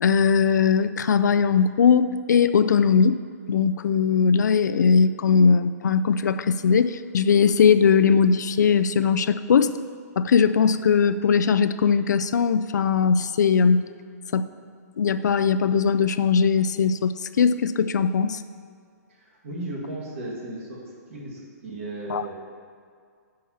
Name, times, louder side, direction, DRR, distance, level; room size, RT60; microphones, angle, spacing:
voice 1, 0.0-3.2 3.5-9.7 10.2-13.9 14.3-14.5 15.0-18.4 22.1-22.2, left 6 dB, 85° left, 12 dB, 0.4 m, -20 dB
voice 2, 19.1-20.8 21.1-22.3, right 2 dB, 50° right, -4 dB, 2.3 m, -35 dB
6.3 x 5.6 x 7.1 m, 2.1 s
hypercardioid pair, 175°, 9 cm